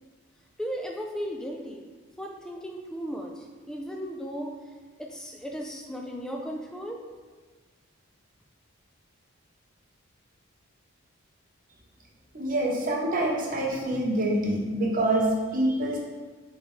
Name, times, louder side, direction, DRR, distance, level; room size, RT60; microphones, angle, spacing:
voice 1, 0.6-1.8 2.2-4.6 5.0-7.0, equal, 5° left, 1 dB, 0.3 m, -36 dB
voice 2, 12.3-16.0, right 1 dB, 40° right, -2 dB, 0.8 m, -26 dB
5.0 x 3.3 x 3.1 m, 1.4 s
head